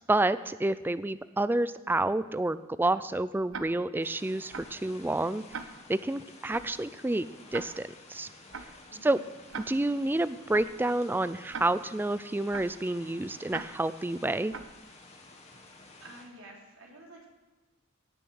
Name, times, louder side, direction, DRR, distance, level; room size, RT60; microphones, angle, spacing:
voice 1, 0.1-5.4 5.9-8.3 9.0-9.2 9.7-14.5, right 2 dB, 10° right, 15 dB, 0.3 m, -29 dB
Tick-tock, 3.5-3.6 4.5-4.7 5.5-5.6 6.5-6.7 7.5-7.6 8.5-8.7 9.5-9.6 10.5-10.7 11.5-11.6 12.5-12.7 13.5-13.6 14.5-14.7, right 5 dB, 60° right, 0.8 m, -38 dB
sound 1, 4.0-16.2, left 3 dB, 30° left, 1.8 m, -52 dB
voice 2, 8.9-9.2 16.0-17.3, right 1 dB, 85° right, -2 dB, 3.3 m, -50 dB
18.0 x 6.8 x 6.4 m, 1.2 s
head